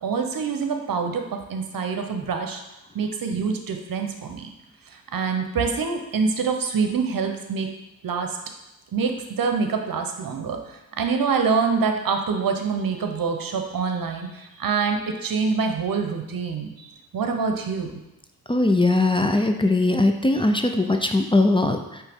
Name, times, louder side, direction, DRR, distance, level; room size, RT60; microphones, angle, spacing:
voice 1, 0.0-2.6 2.9-4.5 4.9-7.7 8.0-8.4 8.9-16.9 17.1-18.0, right 5 dB, 70° right, 5 dB, 0.8 m, -25 dB
voice 2, 18.5-22.0, left 2 dB, 15° left, 5 dB, 0.5 m, -20 dB
8.1 x 3.3 x 3.6 m, 0.92 s
cardioid pair, 50°, 36 cm